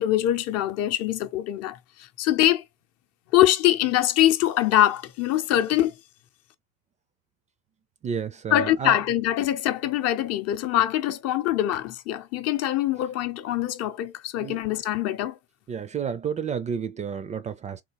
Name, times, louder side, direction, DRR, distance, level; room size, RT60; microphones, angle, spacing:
voice 1, 0.0-2.6 3.3-5.9 8.5-15.4, left 13 dB, 55° left, 0.6 m, -23 dB
voice 2, 8.0-9.0 14.4-14.6 15.7-17.8, right 7 dB, 25° right, 0.4 m, -31 dB
3.7 x 2.4 x 2.9 m
supercardioid pair, 110°, 30 cm